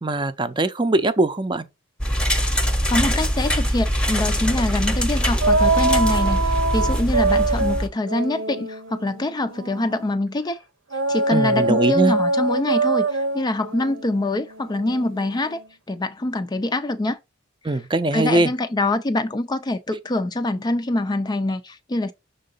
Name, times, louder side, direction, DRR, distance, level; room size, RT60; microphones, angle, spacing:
voice 1, 0.0-1.6 11.3-12.1 17.6-18.5, right 2 dB, 25° right, 0.6 m, -21 dB
sound 1, 2.0-7.9, equal, 5° left, 0.9 m, -22 dB
voice 2, 2.6-10.6 11.1-15.6 15.9-17.2 17.6-17.8 18.1-22.1, left 2 dB, 20° left, 0.4 m, -25 dB
sound 2, 5.4-10.1 10.9-15.6, right 3 dB, 75° right, 1.0 m, -24 dB
6.5 x 3.8 x 3.9 m
head